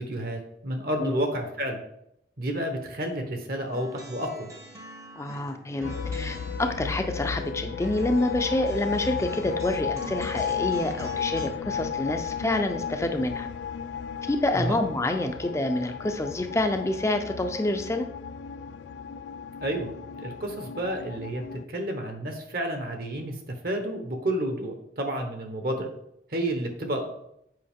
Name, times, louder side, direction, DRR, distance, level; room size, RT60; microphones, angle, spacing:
voice 1, 0.0-1.8 2.4-4.5 14.5-14.8 19.6-19.9 20.2-25.9 26.3-27.1, right 1 dB, 55° right, 5 dB, 1.0 m, -30 dB
sound 1, 3.6-11.5, right 1 dB, 20° right, 0.7 m, -46 dB
voice 2, 5.2-13.5 14.3-18.1, left 1 dB, 15° left, 6 dB, 0.5 m, -27 dB
sound 2, 5.8-21.6, left 7 dB, 85° left, 0.3 m, -34 dB
7.7 x 5.1 x 3.6 m, 0.76 s
head